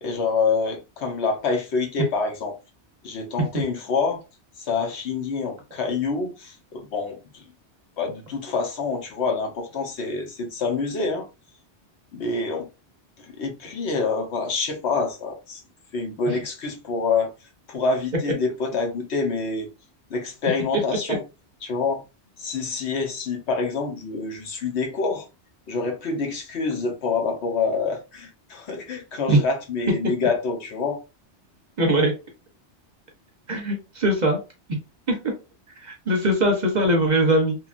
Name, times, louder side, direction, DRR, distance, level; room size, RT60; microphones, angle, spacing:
voice 1, 0.0-2.5 3.0-4.2 4.6-7.4 8.0-11.3 12.1-12.7 13.2-15.6 15.9-17.3 17.7-19.7 20.1-21.2 21.6-22.0 22.4-25.3 25.7-31.0, left 4 dB, 70° left, 1.1 m, -26 dB
voice 2, 31.8-32.1 33.5-34.4 34.7-34.8 35.1-35.2 35.8-37.6, right 1 dB, 45° right, 0.8 m, -21 dB
3.0 x 2.4 x 2.4 m
omnidirectional pair, 1.2 m